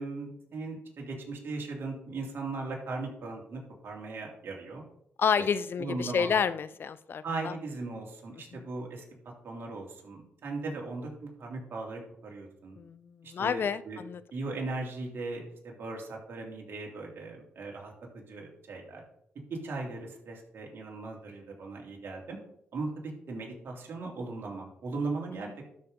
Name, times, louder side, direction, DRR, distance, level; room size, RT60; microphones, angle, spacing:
voice 1, 0.0-4.8 5.4-5.5 5.8-6.4 7.2-9.0 9.4-12.8 13.2-14.0 14.3-19.0 19.5-22.4 22.7-22.9 23.3-25.6, right 3 dB, 65° right, -1 dB, 2.9 m, -38 dB
voice 2, 5.2-7.5 12.8-14.2, left 7 dB, 60° left, 16 dB, 0.5 m, -29 dB
12.5 x 5.6 x 3.7 m, 0.71 s
cardioid pair, 70°, 4 cm